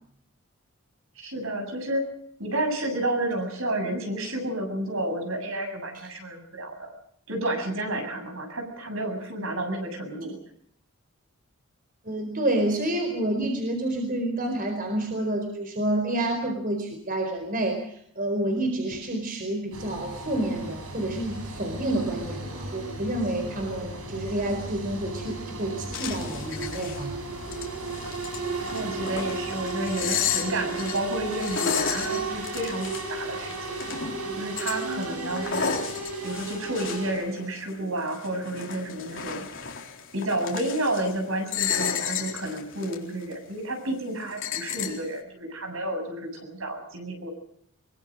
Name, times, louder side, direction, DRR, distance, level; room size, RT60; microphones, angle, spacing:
voice 1, 1.2-2.0 2.4-6.9 7.3-10.4 28.7-33.5 34.4-35.8 36.2-39.4 40.1-47.3, right 1 dB, 65° right, 6 dB, 7.4 m, -31 dB
voice 2, 12.0-27.2, right 1 dB, 40° right, 5 dB, 4.5 m, -29 dB
sound 1, 19.7-37.1, right 3 dB, 80° right, 7.9 m, -35 dB
sound 2, 25.9-27.0 27.4-34.2 34.6-37.8 38.0-41.1 41.5-43.0 43.3-43.4 44.2-45.0, left 7 dB, 60° left, 4.1 m, -32 dB
24.0 x 24.0 x 6.5 m, 0.67 s
head